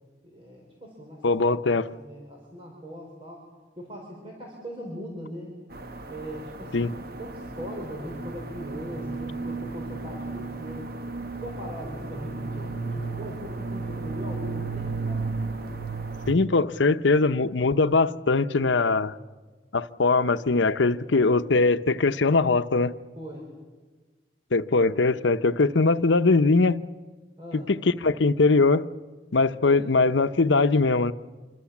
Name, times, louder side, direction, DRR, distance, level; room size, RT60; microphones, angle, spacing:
voice 1, 0.3-3.4 3.8-5.5 6.1-6.9 7.2-10.9 11.4-15.3 23.2-23.5 27.4-27.7 29.6-29.9, equal, 30° right, 5.0 m, -40 dB
voice 2, 1.2-1.9 6.7-6.9 16.3-19.1 19.7-22.9 24.5-26.8 27.5-28.9 29.3-31.1, left 3 dB, 90° left, 0.8 m, -21 dB
sound 1, 5.7-16.3, right 3 dB, 55° right, 1.2 m, -34 dB
27.5 x 25.0 x 7.3 m
head